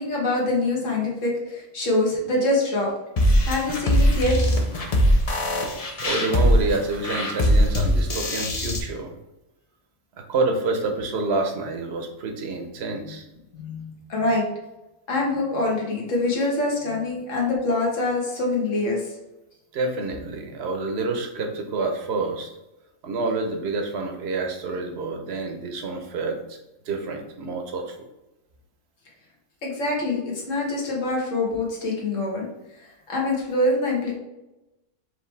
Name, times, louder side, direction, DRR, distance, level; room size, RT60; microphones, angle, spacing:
voice 1, 0.0-2.9 3.4-4.5 13.5-14.4 15.1-19.0 29.6-30.2 30.5-32.5 33.1-34.2, left 2 dB, 70° left, -2 dB, 1.5 m, -24 dB
sound 1, 3.2-8.8, equal, 45° left, 0.5 m, -21 dB
voice 2, 6.0-9.1 10.3-13.2 19.7-22.5 23.0-26.6 26.9-28.0, right 3 dB, 55° right, 4 dB, 0.9 m, -28 dB
4.9 x 3.0 x 3.2 m, 0.97 s
omnidirectional pair, 1.4 m